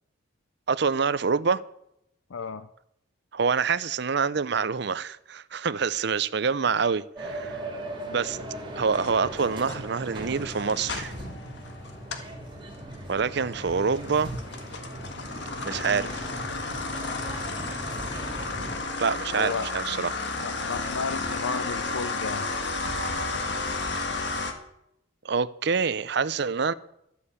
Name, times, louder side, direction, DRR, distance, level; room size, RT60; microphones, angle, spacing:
voice 1, 0.7-1.6 3.3-7.6 8.1-8.4 8.8-11.1 13.1-14.3 15.7-16.3 19.0-20.2 25.2-26.7, right 5 dB, 55° right, 0.6 m, -26 dB
voice 2, 2.3-2.7 19.3-19.7 20.3-22.5, left 5 dB, 85° left, 0.6 m, -33 dB
sound 1, 7.1-18.8, right 1 dB, 25° right, 2.8 m, -38 dB
sound 2, 8.9-12.3 12.7-24.5, left 3 dB, 60° left, 1.6 m, -33 dB
13.0 x 8.3 x 8.3 m
head